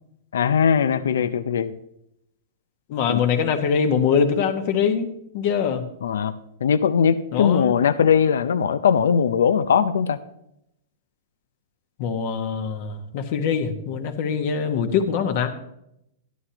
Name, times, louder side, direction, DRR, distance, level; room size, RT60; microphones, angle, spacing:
voice 1, 0.3-1.8 3.1-3.2 6.0-6.3 6.6-10.2, left 7 dB, 85° left, 13 dB, 0.6 m, -20 dB
voice 2, 2.9-5.8 7.3-7.8 12.0-15.5, left 6 dB, 55° left, 6 dB, 1.4 m, -23 dB
13.0 x 11.0 x 2.9 m, 0.79 s
hypercardioid pair, 130°, 0 cm